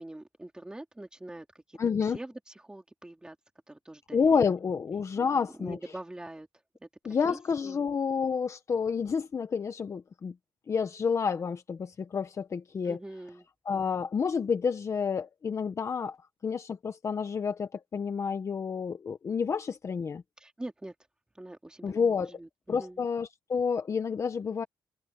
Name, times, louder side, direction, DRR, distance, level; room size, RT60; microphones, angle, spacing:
voice 1, 0.0-1.8 2.1-3.4 3.7-4.4 5.2-6.5 6.8-7.8 12.8-13.5 20.4-20.9 21.3-23.0, right 1 dB, 10° right, 3.1 m, -44 dB
voice 2, 1.8-2.2 4.1-5.8 7.0-10.3 10.7-13.0 13.7-16.2 16.4-20.2 21.8-22.3 22.7-24.6, left 6 dB, 35° left, 0.9 m, -29 dB
wide cardioid pair, 165°, 9 cm